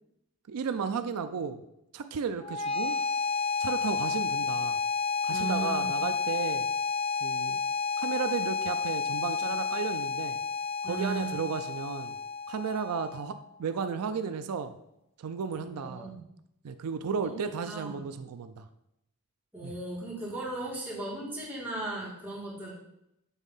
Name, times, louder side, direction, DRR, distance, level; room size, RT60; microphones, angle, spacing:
voice 1, 0.5-1.6 1.9-3.0 3.6-4.8 5.2-6.7 7.2-7.6 8.0-10.4 10.8-12.2 12.5-13.3 13.6-14.7 15.2-16.2 16.6-18.7 19.6-19.7, right 6 dB, 85° right, 10 dB, 0.4 m, -34 dB
sound 1, 2.4-13.4, left 5 dB, 25° left, 0.4 m, -31 dB
voice 2, 5.3-5.9 10.8-11.4 15.6-16.2 17.2-17.4 17.7-18.0 19.5-22.7, right 2 dB, 10° right, -7 dB, 2.3 m, -37 dB
7.2 x 3.6 x 5.5 m, 0.83 s
head